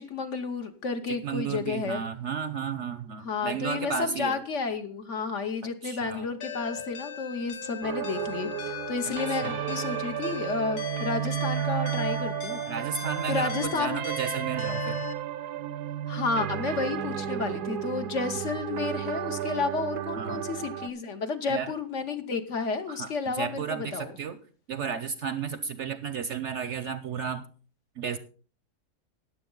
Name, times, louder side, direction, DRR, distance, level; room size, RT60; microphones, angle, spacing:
voice 1, 0.0-2.0 3.2-12.6 13.3-13.9 16.1-24.1, left 4 dB, 55° left, 7 dB, 1.3 m, -31 dB
voice 2, 1.1-4.4 5.6-6.3 9.3-9.6 12.7-15.0 20.2-20.4 21.5-21.7 22.9-24.4 24.7-27.4 28.0-28.2, right 7 dB, 60° right, 12 dB, 0.9 m, -33 dB
sound 1, 6.4-15.1, left 7 dB, 85° left, 1.6 m, -39 dB
sound 2, 7.8-20.9, right 11 dB, 85° right, 1.2 m, -33 dB
14.0 x 9.9 x 3.9 m, 0.40 s
omnidirectional pair, 1.6 m